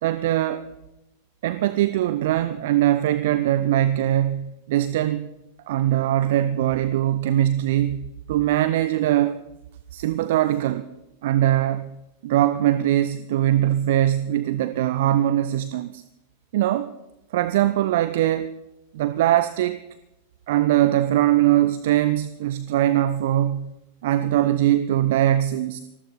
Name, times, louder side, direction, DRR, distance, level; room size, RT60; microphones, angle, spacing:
voice 1, 0.0-0.6 1.4-5.3 5.7-9.4 9.9-10.8 11.2-11.9 12.2-16.0 16.5-16.9 17.3-18.5 18.9-19.8 20.5-23.7 24.0-25.8, right 13 dB, 55° right, 0.7 m, -21 dB
19.5 x 14.5 x 4.1 m
figure-of-eight pair, 90°, 0 cm